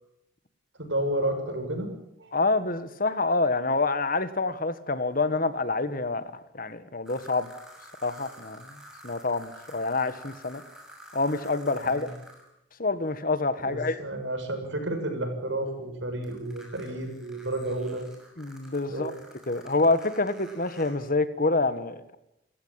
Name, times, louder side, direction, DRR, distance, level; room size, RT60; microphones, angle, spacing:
voice 1, 0.8-1.9 2.2-2.3 11.8-12.1 13.6-18.1 18.9-19.2, right 1 dB, 70° right, 6 dB, 6.7 m, -31 dB
voice 2, 2.3-6.2 6.5-7.5 8.0-8.7 9.0-10.6 11.1-12.1 12.8-14.0 18.4-19.1 19.5-22.2, left 3 dB, 45° left, 13 dB, 1.6 m, -27 dB
sound 1, 7.1-12.5 16.2-20.9, equal, 5° right, 6.1 m, -50 dB
29.5 x 15.5 x 8.9 m, 0.83 s
head